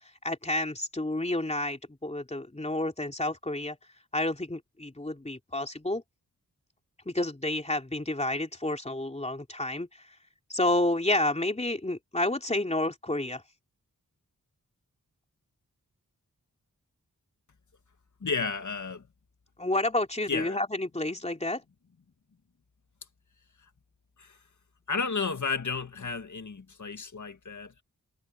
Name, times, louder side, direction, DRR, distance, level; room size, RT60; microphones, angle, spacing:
voice 1, 0.2-3.8 4.1-6.0 7.0-10.1 10.5-13.4 19.6-21.6, left 1 dB, 20° left, 3.2 m, -30 dB
voice 2, 18.2-19.1 20.3-20.6 24.2-24.4 24.9-27.8, left 4 dB, 55° left, 1.9 m, -32 dB
wide cardioid pair, 75°, 35 cm